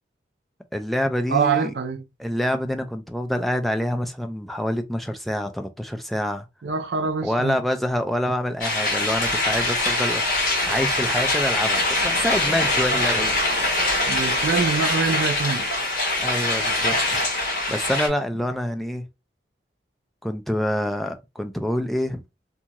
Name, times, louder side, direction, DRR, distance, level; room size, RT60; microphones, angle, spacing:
voice 1, 0.7-1.7 2.2-6.4 7.2-13.4 16.2-17.2 17.7-19.0 20.2-22.2, equal, ahead, 0.3 m, -26 dB
voice 2, 1.3-2.0 6.6-7.6 14.1-15.7, right 5 dB, 65° right, 0.4 m, -24 dB
sound 1, 8.6-18.1, left 2 dB, 50° left, 1.2 m, -23 dB
2.7 x 2.4 x 2.8 m
head